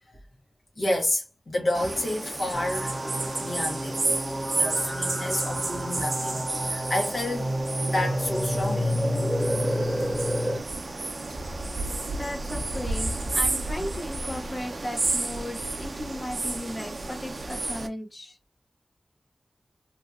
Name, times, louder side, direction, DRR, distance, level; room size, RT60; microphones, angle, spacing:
voice 1, 0.8-3.0 3.4-4.0 4.5-7.5 7.9-9.0, left 1 dB, 75° left, 1.3 m, -30 dB
sound 1, 1.7-17.9, right 2 dB, 65° right, 0.5 m, -31 dB
sound 2, 2.5-10.6, equal, 20° right, 0.8 m, -29 dB
voice 2, 11.7-18.4, left 1 dB, 40° left, 0.9 m, -36 dB
2.9 x 2.7 x 2.3 m
cardioid pair, 45°, 0 cm